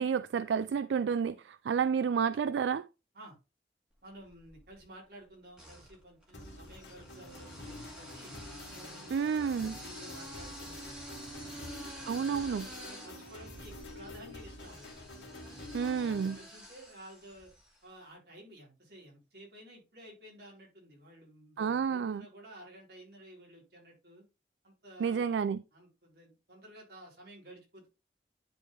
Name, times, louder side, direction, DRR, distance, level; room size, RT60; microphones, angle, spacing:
voice 1, 0.0-2.9 9.1-9.8 12.1-12.7 15.7-16.4 21.6-22.2 25.0-25.6, right 6 dB, 85° right, 0.3 m, -30 dB
voice 2, 4.0-8.3 8.7-14.9 15.5-17.5 17.8-24.3 24.6-25.4 25.7-27.9, right 1 dB, 65° right, 4.4 m, -53 dB
sound 1, 4.2-4.8 5.5-17.8, equal, 5° right, 2.1 m, -49 dB
sound 2, 6.3-16.3, left 2 dB, 85° left, 1.8 m, -48 dB
10.0 x 4.6 x 3.3 m
head